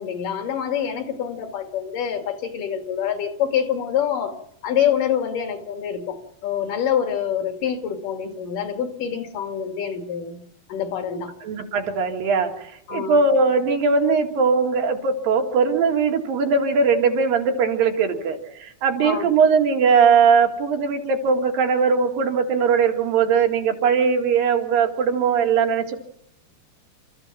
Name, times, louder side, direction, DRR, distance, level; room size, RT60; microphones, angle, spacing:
voice 1, 0.0-4.3 4.6-10.4 10.7-11.3 12.9-13.2 19.0-19.3, left 8 dB, 70° left, 5 dB, 3.7 m, -26 dB
voice 2, 11.4-26.0, right 5 dB, 80° right, 3 dB, 3.7 m, -20 dB
29.0 x 14.0 x 7.5 m, 0.74 s
omnidirectional pair, 4.0 m